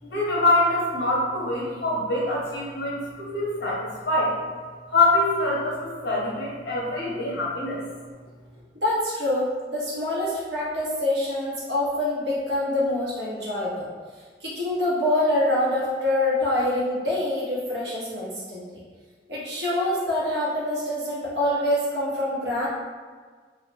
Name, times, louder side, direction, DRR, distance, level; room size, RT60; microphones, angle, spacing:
voice 1, 0.0-4.3 4.9-7.8, left 2 dB, 65° left, -6 dB, 0.9 m, -24 dB
voice 2, 8.7-13.9 14.4-18.8 19.3-22.7, left 1 dB, 65° right, -6 dB, 1.0 m, -25 dB
3.2 x 2.3 x 2.9 m, 1.5 s
head